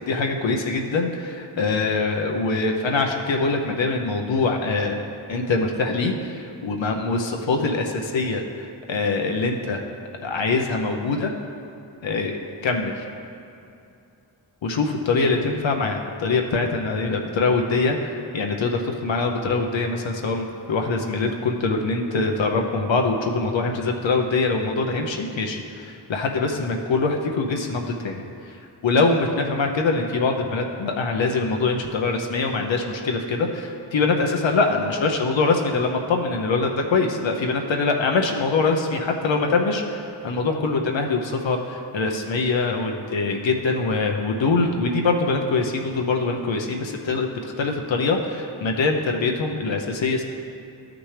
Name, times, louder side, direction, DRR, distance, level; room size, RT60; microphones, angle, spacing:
voice 1, 0.1-5.0 5.3-9.8 10.2-11.3 12.0-13.0 14.6-28.6 28.8-50.2, left 3 dB, 65° left, 2 dB, 0.8 m, -23 dB
12.0 x 6.0 x 3.3 m, 2.6 s
cardioid pair, 45°, 48 cm